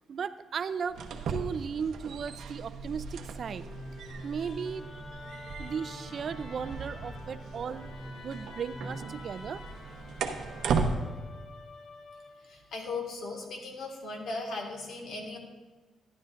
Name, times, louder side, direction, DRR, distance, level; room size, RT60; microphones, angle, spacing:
voice 1, 0.1-1.0 1.3-3.6 4.2-4.9 5.6-7.9 8.2-9.6, right 6 dB, 50° right, 13 dB, 0.4 m, -36 dB
sound 1, 0.9-10.9, right 5 dB, 80° right, 0.8 m, -37 dB
Musical instrument, 3.6-12.8, left 3 dB, 45° left, 0.8 m, -47 dB
voice 2, 5.3-5.7 12.4-15.4, left 3 dB, 75° left, 1 dB, 1.8 m, -38 dB
13.0 x 10.5 x 2.5 m, 1.3 s
cardioid pair, 130°, 0 cm